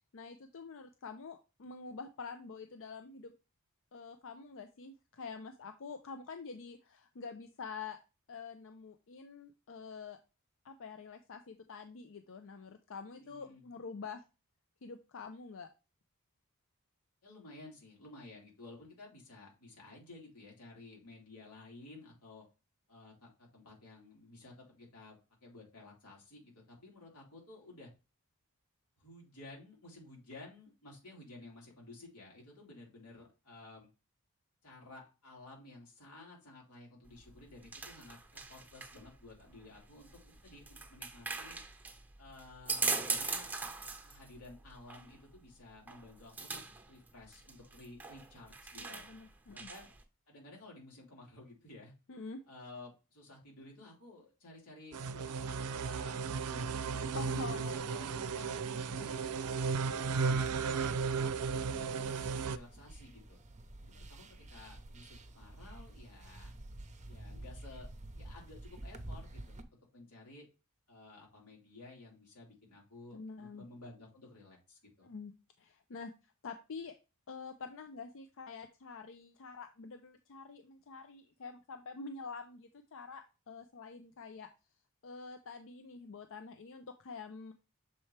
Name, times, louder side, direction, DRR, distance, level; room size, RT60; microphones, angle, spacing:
voice 1, 0.1-3.3 3.9-8.0 8.3-10.2 10.6-14.2 14.8-15.7 48.8-49.7 52.1-52.4 57.1-59.1 73.1-73.6 75.0-75.3 75.6-76.1 76.4-76.9 77.3-84.5 85.0-87.5, left 4 dB, 60° left, 7 dB, 0.5 m, -47 dB
voice 2, 13.1-13.6 17.2-22.5 22.9-27.9 29.0-33.9 34.6-41.6 42.2-43.5 44.0-46.6 46.9-49.0 49.5-49.9 50.3-51.9 52.5-57.7 59.0-59.3 59.7-63.4 63.8-66.5 67.1-69.6 69.9-70.5 70.9-75.1, left 2 dB, 90° left, -2 dB, 3.4 m, -54 dB
sound 1, 37.1-50.0, right 4 dB, 10° right, 1.0 m, -41 dB
sound 2, 54.9-62.6, right 5 dB, 85° right, 0.5 m, -35 dB
sound 3, 60.2-69.6, right 1 dB, 30° right, 0.7 m, -50 dB
6.8 x 4.3 x 3.2 m, 0.30 s
head